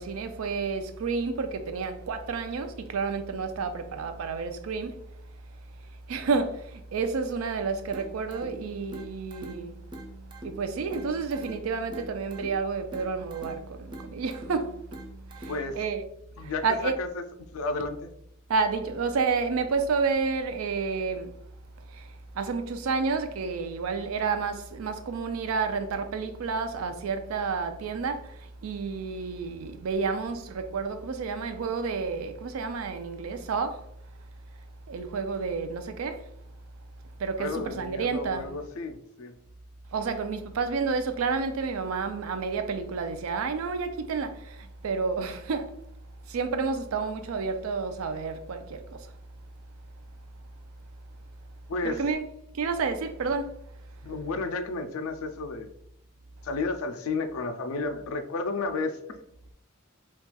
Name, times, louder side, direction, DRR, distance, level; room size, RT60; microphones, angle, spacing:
voice 1, 0.0-5.0 6.1-9.8 10.4-14.8 15.3-16.0 16.4-16.9 18.5-21.4 21.9-33.9 34.9-36.3 37.2-38.5 39.9-45.8 46.3-49.1 51.8-52.2 52.5-53.6, right 4 dB, 85° right, 0.4 m, -30 dB
sound 1, 7.9-15.9, right 1 dB, 20° right, 0.4 m, -45 dB
voice 2, 15.5-15.8 16.4-17.2 17.5-18.1 37.4-39.3 51.7-52.0 54.0-55.7 56.4-59.2, left 3 dB, 85° left, 0.4 m, -32 dB
4.1 x 2.3 x 2.3 m
head